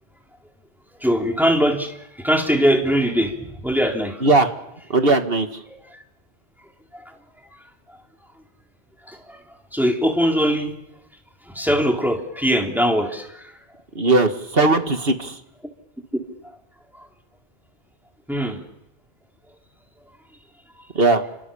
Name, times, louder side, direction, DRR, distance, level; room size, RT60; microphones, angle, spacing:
voice 1, 1.0-4.2 5.7-6.0 6.9-7.0 9.1-9.4 9.7-10.7 11.5-13.5 18.3-18.6, equal, ahead, 1 dB, 3.8 m, -21 dB
voice 2, 4.2-4.5 4.9-5.5 14.0-15.4 21.0-21.2, right 2 dB, 60° right, 7 dB, 2.2 m, -18 dB
30.0 x 26.0 x 7.2 m, 0.86 s
omnidirectional pair, 1.1 m